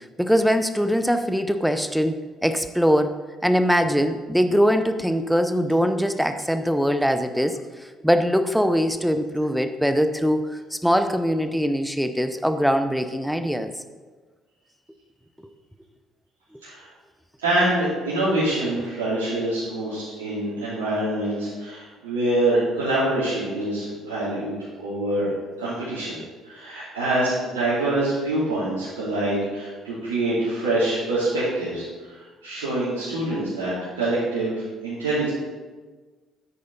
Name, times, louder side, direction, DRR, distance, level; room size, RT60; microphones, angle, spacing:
voice 1, 0.2-7.5 8.0-13.7, equal, ahead, 9 dB, 0.8 m, -22 dB
voice 2, 17.4-24.5 24.8-25.3 25.6-26.2 26.4-35.3, right 1 dB, 75° right, -12 dB, 2.9 m, -25 dB
9.6 x 8.6 x 4.1 m, 1.3 s
figure-of-eight pair, 50°, 0 cm